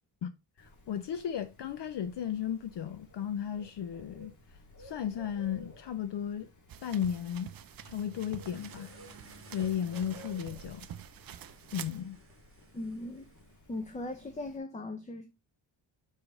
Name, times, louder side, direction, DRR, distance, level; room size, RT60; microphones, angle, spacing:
voice 1, 0.6-4.3 4.8-6.5 6.8-7.5 7.8-8.9 9.5-10.9 11.7-12.2, left 9 dB, 55° left, 0.6 m, -35 dB
Bird, 0.6-14.6, left 1 dB, 35° left, 1.7 m, -55 dB
sound 1, 6.7-12.0, right 10 dB, 45° right, 0.5 m, -48 dB
sound 2, 8.4-13.7, right 4 dB, 25° right, 1.1 m, -60 dB
voice 2, 12.7-13.3 13.7-15.3, left 2 dB, 15° left, 0.5 m, -38 dB
5.7 x 5.0 x 3.8 m
wide cardioid pair, 160°, 50 cm